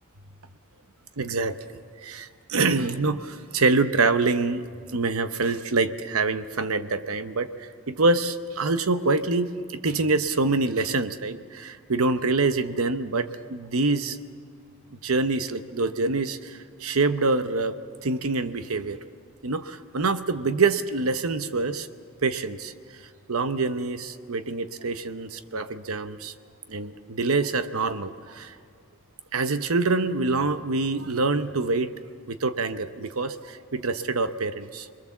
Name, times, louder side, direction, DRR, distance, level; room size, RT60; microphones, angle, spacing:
voice 1, 1.2-1.6 2.0-14.2 15.0-19.0 19.4-21.9 22.2-22.7 23.3-26.3 26.7-28.5 29.3-31.9 32.3-34.9, right 3 dB, 85° right, 10 dB, 0.9 m, -26 dB
26.0 x 21.5 x 7.2 m, 2.1 s
head